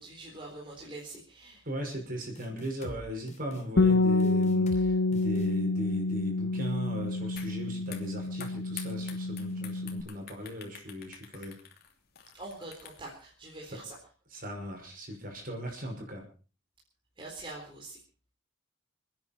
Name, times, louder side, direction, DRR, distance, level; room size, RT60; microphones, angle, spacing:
voice 1, 0.0-1.7 11.3-11.5 12.3-14.0 17.2-18.0, right 2 dB, 25° right, -2 dB, 3.9 m, -44 dB
voice 2, 1.7-11.6 14.3-16.2, equal, 45° right, 2 dB, 5.8 m, -38 dB
sound 1, 2.4-3.0 3.3-3.6 4.2-4.9 5.1-5.5, equal, 40° left, 3.1 m, -45 dB
Bass guitar, 3.8-10.0, left 3 dB, 70° left, 1.2 m, -28 dB
sound 2, 7.4-7.5 7.8-13.2, left 9 dB, 55° left, 2.9 m, -47 dB
28.5 x 10.0 x 4.3 m, 0.37 s
head